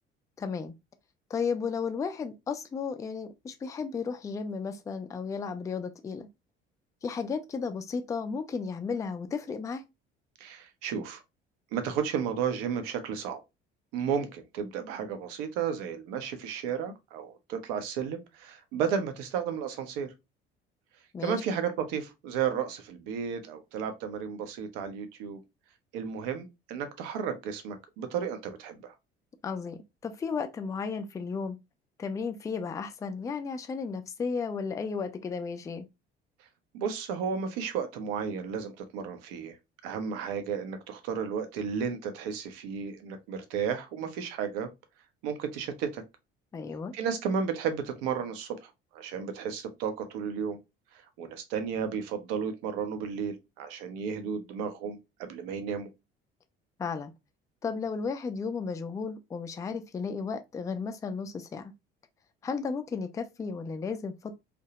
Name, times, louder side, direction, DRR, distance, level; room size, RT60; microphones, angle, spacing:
voice 1, 0.4-0.7 1.3-6.3 7.0-9.8 21.1-21.4 29.4-31.6 32.0-35.8 46.5-46.9 56.8-57.1 57.6-61.7 62.4-64.3, left 5 dB, 10° left, 0.3 m, -34 dB
voice 2, 10.4-11.2 11.7-13.4 13.9-20.1 21.2-25.4 25.9-28.9 36.7-39.6 39.8-44.7 45.2-46.0 46.9-50.6 50.9-55.9, right 7 dB, 65° right, 0.6 m, -33 dB
2.7 x 2.1 x 2.7 m
figure-of-eight pair, 55°, 31 cm